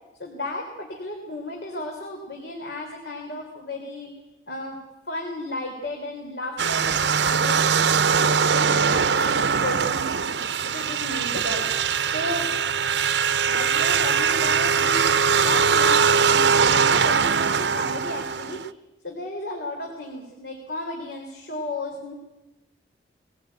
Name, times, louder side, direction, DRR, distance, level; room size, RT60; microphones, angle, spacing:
voice 1, 0.2-4.1 4.5-7.6 8.1-11.7 12.1-12.5 13.5-15.1 15.4-18.6 19.0-22.1, left 1 dB, 70° left, 1 dB, 3.6 m, -34 dB
sound 1, 6.6-18.7, right 6 dB, 80° right, 0.8 m, -21 dB
21.5 x 17.5 x 9.4 m, 1.1 s
head